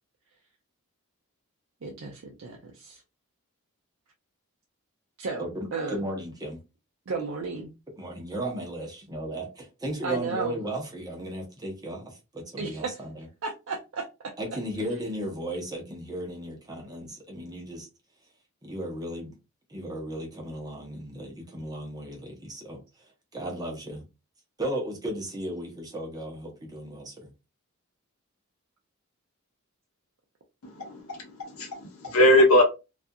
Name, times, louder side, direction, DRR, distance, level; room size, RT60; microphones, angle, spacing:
voice 1, 1.8-3.0 5.2-6.0 7.1-7.7 10.0-10.6 12.6-13.0 13.4-14.3, right 4 dB, 60° right, 0.5 m, -34 dB
voice 2, 5.4-6.6 8.0-13.3 14.4-17.9 18.6-19.4 19.7-23.1 23.3-24.0 24.6-27.3, right 1 dB, 15° right, 0.6 m, -35 dB
voice 3, 30.6-32.6, left 1 dB, 75° left, 0.8 m, -21 dB
2.4 x 2.4 x 2.6 m
head